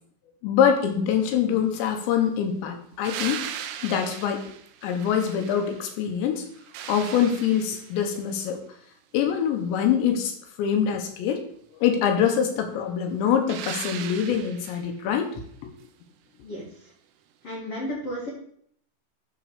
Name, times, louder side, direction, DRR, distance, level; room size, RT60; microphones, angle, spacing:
voice 1, 0.4-3.4 3.8-4.4 4.8-6.4 6.9-8.6 9.1-10.3 10.6-11.4 11.8-15.3 15.6-15.7, left 8 dB, 75° left, 4 dB, 3.1 m, -24 dB
sound 1, 3.0-6.0 6.4-8.1 13.5-14.9 17.5-17.6, right 10 dB, 85° right, 2.4 m, -38 dB
voice 2, 17.4-18.3, equal, 55° left, -4 dB, 1.7 m, -33 dB
10.0 x 3.9 x 6.8 m, 0.65 s
omnidirectional pair, 5.8 m